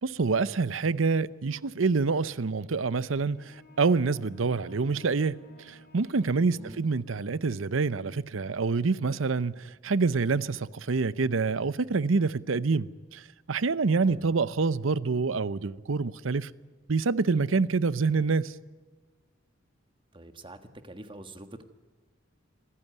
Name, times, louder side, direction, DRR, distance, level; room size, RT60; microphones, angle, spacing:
voice 1, 0.0-16.5 16.9-18.5, right 4 dB, 80° right, 0.7 m, -27 dB
sound 1, 3.1-7.1, left 2 dB, 50° left, 3.2 m, -53 dB
voice 2, 20.1-20.6 20.8-21.7, right 2 dB, 25° right, 1.4 m, -45 dB
25.5 x 14.5 x 9.4 m
head